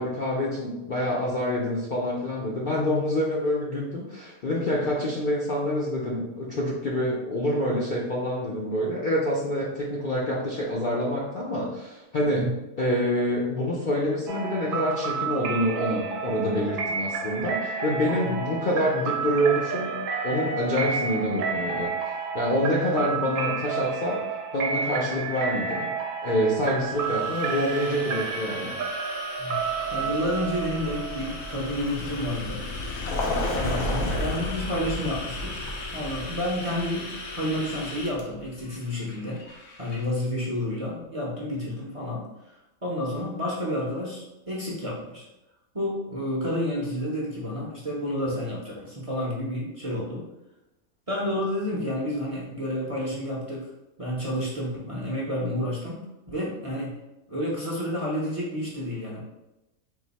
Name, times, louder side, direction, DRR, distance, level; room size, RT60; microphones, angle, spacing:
voice 1, 0.0-12.5 12.8-19.9 20.2-21.9 22.3-24.2 24.5-25.9 26.2-28.7, equal, 50° left, -4 dB, 0.7 m, -26 dB
sound 1, 14.3-31.9, right 6 dB, 70° right, 0.9 m, -31 dB
sound 2, 26.6-40.1, left 2 dB, 65° left, 1.1 m, -40 dB
voice 2, 29.4-32.6 33.5-35.6 35.9-39.4 39.8-45.3 45.7-50.2 51.1-53.7 54.0-56.9 57.3-59.2, left 1 dB, 30° right, -5 dB, 0.7 m, -30 dB
Vehicle, 29.7-38.5, left 1 dB, 85° left, 1.2 m, -33 dB
3.9 x 2.6 x 4.1 m, 0.95 s
omnidirectional pair, 1.4 m